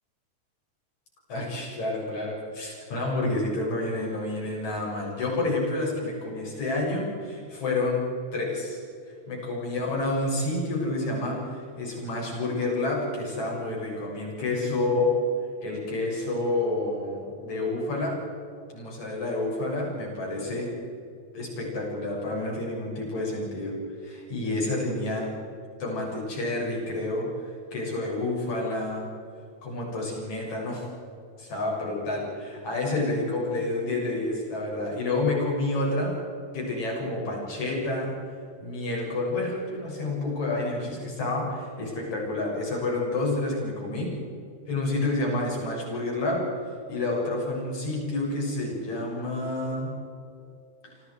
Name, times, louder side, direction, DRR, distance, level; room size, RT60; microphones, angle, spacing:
voice 1, 1.3-8.1 8.3-8.8 9.3-15.1 15.6-18.2 18.7-20.7 21.3-23.8 24.0-25.3 25.8-29.1 29.6-30.8 31.4-36.2 36.5-38.2 38.6-44.1 44.7-46.5 46.9-49.9 50.8-50.9, left 2 dB, 70° left, -2 dB, 8.4 m, -29 dB
28.5 x 26.0 x 4.8 m, 2.5 s
omnidirectional pair, 3.4 m